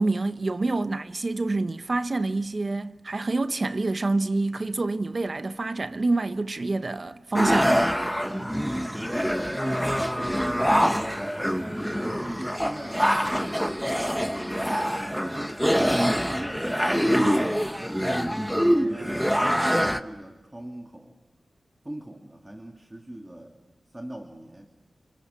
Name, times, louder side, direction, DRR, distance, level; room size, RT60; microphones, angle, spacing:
voice 1, 0.0-7.9, right 2 dB, 50° right, 0.8 m, -27 dB
sound 1, 7.3-20.0, equal, ahead, 1.1 m, -25 dB
voice 2, 8.7-9.1 9.6-11.6 12.0-14.3 15.4-18.2 18.5-21.2 21.8-23.6 23.9-24.7, right 1 dB, 20° right, 2.4 m, -40 dB
29.5 x 28.5 x 6.9 m
wide cardioid pair, 75°, 0 cm